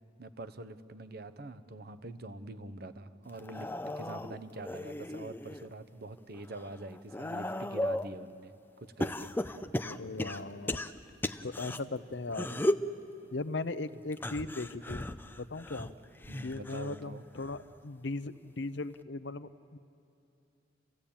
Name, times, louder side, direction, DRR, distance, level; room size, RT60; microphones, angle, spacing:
voice 1, 0.2-8.5 8.8-9.3 12.3-12.4 13.9-14.1 16.3-17.2, right 2 dB, 55° right, 11 dB, 0.9 m, -45 dB
sound 1, 3.3-5.7 6.2-8.1 9.0-11.8 12.3-12.9 14.1-17.0 17.4-17.8 18.9-19.0, left 1 dB, 10° left, 0.5 m, -36 dB
voice 2, 9.8-10.8 11.4-12.6 13.3-15.1 15.4-15.9 16.4-19.8, left 3 dB, 65° left, 13 dB, 0.8 m, -38 dB
29.5 x 16.0 x 8.7 m, 2.6 s
head